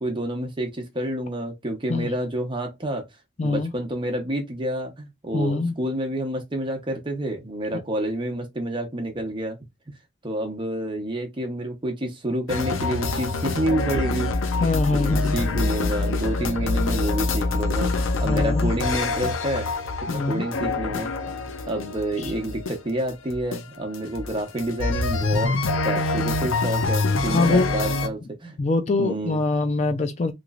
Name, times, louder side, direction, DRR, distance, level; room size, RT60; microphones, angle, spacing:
voice 1, 0.0-3.0 3.4-9.6 10.2-14.3 14.9-17.9 18.2-19.7 20.1-21.1 21.7-25.6 25.8-28.6 29.0-29.4, right 1 dB, 25° right, 0.9 m, -28 dB
voice 2, 3.4-3.7 5.3-5.7 7.7-7.8 14.6-15.4 18.2-18.7 20.1-20.5 22.2-22.3 27.3-27.7 28.6-30.3, left 3 dB, 35° left, 0.3 m, -23 dB
sound 1, 12.5-28.1, left 3 dB, 85° left, 0.6 m, -25 dB
3.1 x 3.0 x 2.4 m
head